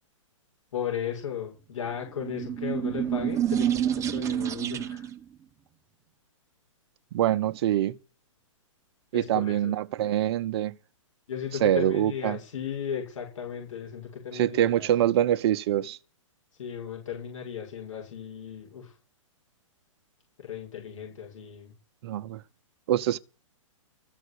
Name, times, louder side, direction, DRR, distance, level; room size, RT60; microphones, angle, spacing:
voice 1, 0.7-5.1 9.1-9.7 11.3-14.9 16.6-18.9 20.4-21.7, left 8 dB, 70° left, 7.1 m, -36 dB
sound 1, 2.1-5.2, right 10 dB, 20° right, 0.7 m, -28 dB
voice 2, 7.1-8.0 9.1-10.7 11.6-12.4 14.3-16.0 22.0-22.4 22.9-23.2, right 12 dB, 50° right, 0.8 m, -25 dB
14.5 x 6.0 x 9.9 m
hypercardioid pair, 130°, 17 cm